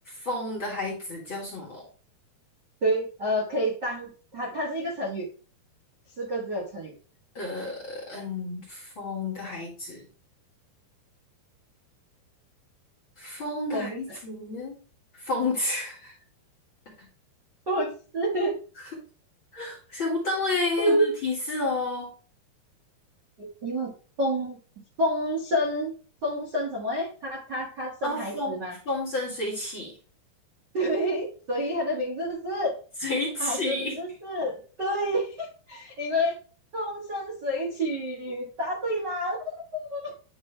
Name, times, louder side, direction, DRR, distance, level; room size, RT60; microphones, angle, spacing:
voice 1, 0.1-1.8 7.3-10.0 13.2-14.8 15.2-16.1 19.5-22.1 28.0-28.6 28.9-29.9 33.0-33.9, left 2 dB, 40° left, -4 dB, 2.1 m, -30 dB
voice 2, 2.8-5.3 6.2-6.9 13.7-14.2 17.7-18.5 20.8-21.1 23.4-23.9 24.2-24.6 25.0-25.9 26.2-28.7 30.7-32.7 33.4-36.3 36.7-39.4 39.9-40.1, equal, 45° right, -6 dB, 1.4 m, -28 dB
10.5 x 3.6 x 3.3 m, 0.38 s
omnidirectional pair, 4.8 m